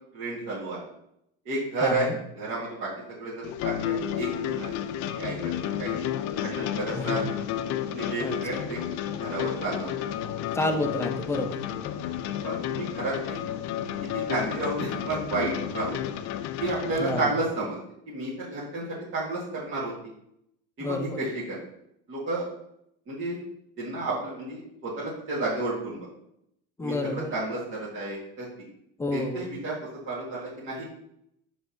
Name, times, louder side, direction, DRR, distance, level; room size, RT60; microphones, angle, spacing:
voice 1, 0.1-0.8 1.5-2.1 2.4-4.8 5.1-6.1 6.4-7.2 7.9-8.8 9.2-10.1 12.4-13.4 14.1-16.0 16.6-17.8 18.1-19.9 20.8-21.6 22.1-22.5 23.1-23.4 23.8-26.1 26.8-28.5 29.1-29.7 30.1-30.9, right 2 dB, 40° right, -7 dB, 1.9 m, -31 dB
voice 2, 1.8-2.2 6.9-7.2 8.2-8.6 10.5-11.6 17.0-17.3 20.8-21.2 26.8-27.4 29.0-29.4, left 2 dB, 10° left, 5 dB, 0.7 m, -29 dB
sound 1, 3.4-17.3, left 10 dB, 60° left, 0.6 m, -31 dB
5.3 x 3.5 x 5.7 m, 0.77 s
cardioid pair, 125°, 32 cm